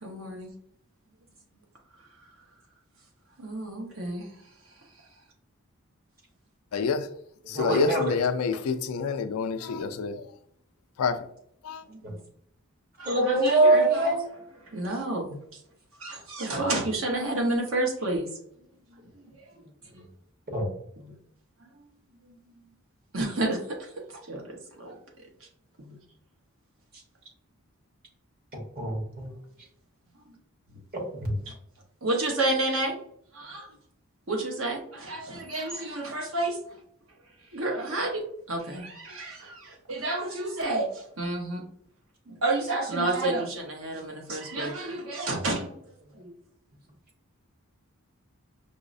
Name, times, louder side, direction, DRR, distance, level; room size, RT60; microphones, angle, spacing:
voice 1, 0.0-0.5 3.4-4.3 11.8-12.2 13.0-14.1 14.7-15.4 16.0-18.3 19.4-19.5 19.9-20.1 21.0-21.1 22.3-22.4 23.1-23.9 24.3-25.0 25.8-25.9 31.5-31.6 32.0-33.0 33.3-33.7 34.3-36.6 37.5-38.2 38.5-41.6 42.3-45.8 46.1-46.3, right 2 dB, 65° right, 0.9 m, -30 dB
voice 2, 6.7-7.1 7.5-10.3 11.0-11.2 11.6-11.8, left 5 dB, 90° left, 0.4 m, -27 dB
voice 3, 7.5-8.1 12.0-12.1 13.1-14.3 20.5-20.7 28.8-29.3 31.2-31.4, right 2 dB, 45° right, 1.1 m, -23 dB
5.3 x 2.0 x 2.5 m
head